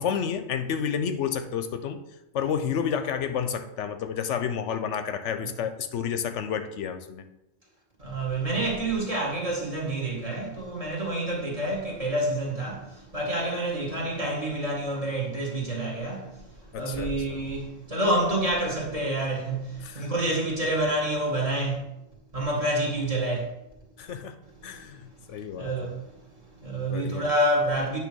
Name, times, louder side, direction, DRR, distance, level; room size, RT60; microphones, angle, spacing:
voice 1, 0.0-2.0 2.3-7.2 16.7-17.4 19.8-20.1 24.0-24.3 24.6-25.0 25.3-25.9 26.8-27.2, left 7 dB, 75° left, 0.9 m, -30 dB
voice 2, 8.0-16.5 16.7-21.8 22.3-23.5 25.6-26.1 26.6-28.0, right 1 dB, 30° right, 1.8 m, -28 dB
8.4 x 3.1 x 6.1 m
omnidirectional pair, 1.3 m